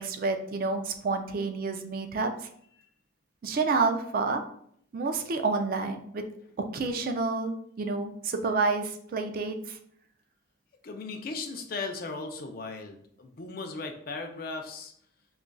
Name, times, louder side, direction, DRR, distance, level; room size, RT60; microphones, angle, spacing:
voice 1, 0.0-2.3 3.4-4.4 4.9-6.3 6.6-7.5 7.8-9.8, right 4 dB, 50° right, 6 dB, 0.3 m, -29 dB
voice 2, 10.8-14.9, left 3 dB, 50° left, 4 dB, 0.4 m, -37 dB
5.1 x 2.3 x 2.2 m, 0.67 s
head